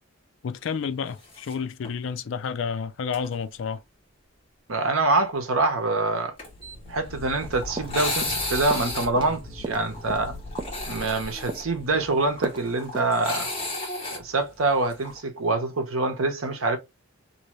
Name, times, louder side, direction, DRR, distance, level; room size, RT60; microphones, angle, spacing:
voice 1, 0.4-3.8, left 6 dB, 65° left, 0.4 m, -30 dB
sound 1, 1.2-1.5 1.8-1.9 3.1-3.3 6.4-15.2, left 2 dB, 25° left, 1.3 m, -34 dB
voice 2, 4.7-6.3 6.9-10.4 10.9-13.5 14.1-16.8, right 2 dB, 80° right, 0.8 m, -25 dB
sound 2, 6.4-12.8, left 1 dB, 40° right, 1.1 m, -41 dB
sound 3, 7.8-8.5 8.7-9.3 9.6-11.2 11.5-12.1 12.4-12.7 12.9-13.1, right 3 dB, 25° right, 0.3 m, -35 dB
2.7 x 2.7 x 3.1 m
head